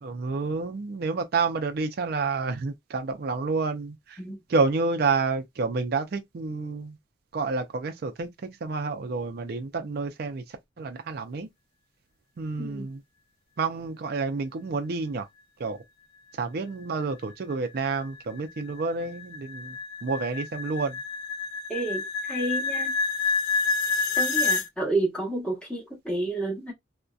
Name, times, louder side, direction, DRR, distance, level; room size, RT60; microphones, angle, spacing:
voice 1, 0.0-4.2 4.5-7.0 7.3-8.3 8.6-11.5 12.4-13.0 13.6-15.3 15.6-15.8 16.4-21.0, right 4 dB, 50° right, 0.4 m, -29 dB
sound 1, 17.5-24.7, left 4 dB, 70° left, 0.4 m, -28 dB
voice 2, 21.7-22.9 24.2-26.7, right 2 dB, 5° left, 0.9 m, -30 dB
2.6 x 2.1 x 2.3 m
head